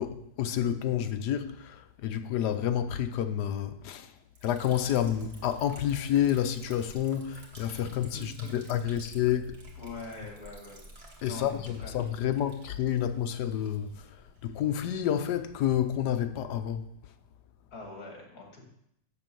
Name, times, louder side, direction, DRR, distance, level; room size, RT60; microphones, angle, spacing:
voice 1, 0.0-4.2 4.4-9.6 11.2-14.2 14.4-16.9, left 10 dB, 75° left, 1.3 m, -29 dB
Liquid, 4.4-16.8, right 1 dB, 35° right, 2.0 m, -53 dB
voice 2, 8.1-8.9 9.8-10.9 11.2-11.9 17.7-18.7, left 3 dB, 60° left, 2.7 m, -43 dB
11.5 x 3.9 x 7.6 m
omnidirectional pair, 1.8 m